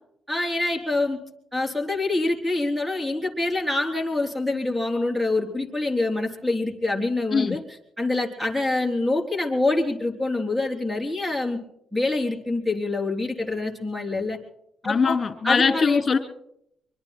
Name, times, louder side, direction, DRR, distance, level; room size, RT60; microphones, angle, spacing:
voice 1, 0.3-1.2 1.5-7.6 8.0-11.6 11.9-14.4 14.8-15.2 15.4-16.0, left 2 dB, 5° right, 3 dB, 3.6 m, -25 dB
voice 2, 14.8-16.2, left 5 dB, 40° left, 8 dB, 2.7 m, -21 dB
24.5 x 24.0 x 2.2 m, 0.76 s
cardioid pair, 90°, 0 cm